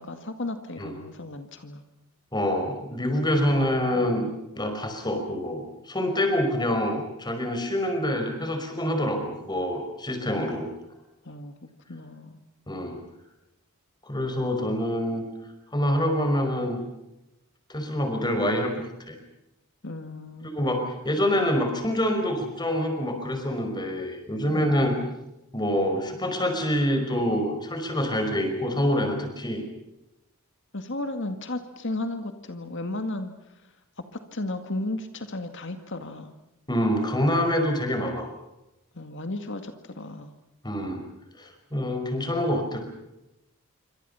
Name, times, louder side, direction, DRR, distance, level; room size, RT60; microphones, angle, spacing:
voice 1, 0.0-1.8 3.5-4.0 11.2-12.4 19.8-20.6 24.5-25.0 30.7-33.3 34.3-36.3 38.9-40.3, left 2 dB, 55° left, 7 dB, 2.0 m, -34 dB
voice 2, 2.3-4.3 4.5-10.7 12.7-13.0 14.0-15.2 15.7-16.8 17.7-18.7 19.0-19.2 20.5-25.0 25.5-29.6 36.7-38.3 40.6-41.0 41.4-42.8, equal, 20° left, 5 dB, 5.4 m, -26 dB
27.5 x 25.5 x 5.7 m, 0.91 s
head